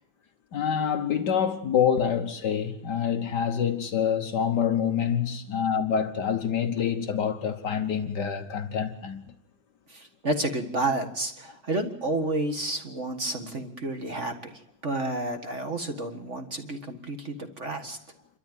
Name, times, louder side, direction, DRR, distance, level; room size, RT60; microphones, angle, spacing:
voice 1, 0.5-9.2, left 8 dB, 85° left, 0.9 m, -26 dB
voice 2, 9.9-18.0, right 2 dB, 35° right, 1.2 m, -30 dB
28.0 x 13.5 x 9.1 m
omnidirectional pair, 3.6 m